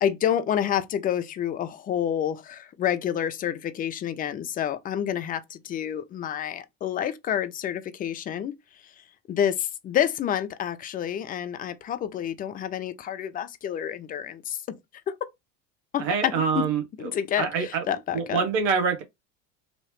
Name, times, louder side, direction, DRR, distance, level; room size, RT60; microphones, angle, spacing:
voice 1, 0.0-8.5 9.0-14.8 15.1-15.2 15.9-16.7 17.0-18.4, left 10 dB, 20° left, 0.4 m, -28 dB
voice 2, 16.0-17.1 17.4-17.8 18.1-19.0, right 6 dB, 75° right, 1.0 m, -25 dB
3.1 x 2.8 x 3.0 m
supercardioid pair, 115°, 40 cm